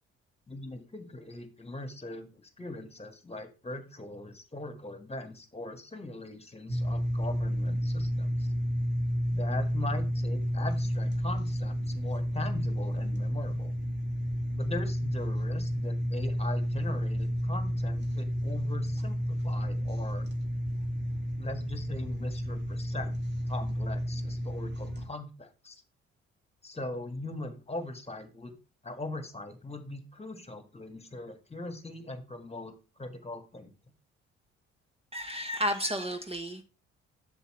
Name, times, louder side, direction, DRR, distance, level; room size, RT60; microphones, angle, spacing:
voice 1, 0.5-8.5 9.3-13.7 14.5-20.3 21.4-23.2 23.5-25.8 26.6-28.5 28.8-33.7, left 2 dB, 20° left, 1.9 m, -40 dB
sound 1, 6.7-25.1, equal, 35° right, 2.5 m, -31 dB
voice 2, 35.1-36.6, equal, 20° right, 1.3 m, -32 dB
8.0 x 7.2 x 3.3 m
hypercardioid pair, 55°, 30 cm